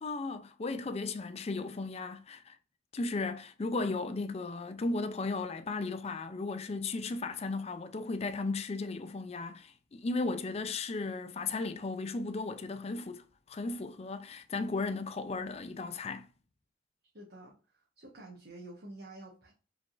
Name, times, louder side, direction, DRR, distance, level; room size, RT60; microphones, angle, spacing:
voice 1, 0.0-2.6 2.9-16.3, left 3 dB, 35° left, 0.4 m, -35 dB
voice 2, 17.1-19.5, right 2 dB, 55° right, 1.2 m, -49 dB
5.2 x 3.7 x 2.5 m
head